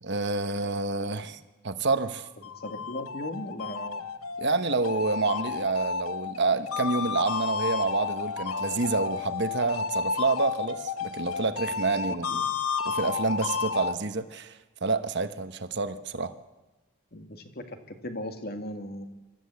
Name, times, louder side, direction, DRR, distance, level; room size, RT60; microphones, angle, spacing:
voice 1, 0.0-2.3 4.4-12.4 12.8-16.3, right 3 dB, 55° right, 10 dB, 1.1 m, -28 dB
sound 1, 2.2-13.9, left 5 dB, 80° left, 1.0 m, -32 dB
voice 2, 2.6-4.1 12.3-12.4 17.1-19.1, left 1 dB, 45° left, 6 dB, 1.9 m, -37 dB
24.5 x 14.0 x 8.3 m, 1.1 s
head